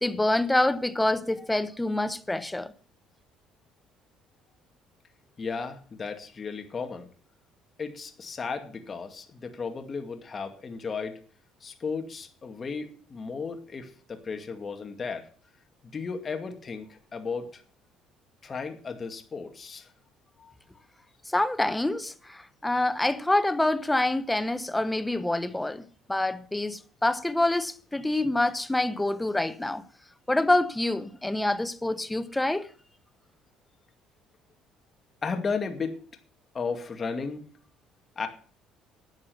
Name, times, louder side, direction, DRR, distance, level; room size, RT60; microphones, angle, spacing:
voice 1, 0.0-2.7 21.3-29.8 30.3-32.7, left 2 dB, 5° left, 0.9 m, -26 dB
voice 2, 5.4-7.1 7.8-11.2 11.6-15.3 15.9-17.6 18.4-19.9 20.4-20.5 35.2-36.0 36.5-37.4 38.2-38.3, left 5 dB, 25° left, 2.2 m, -34 dB
12.5 x 8.6 x 6.9 m
cardioid pair, 140°, 0 cm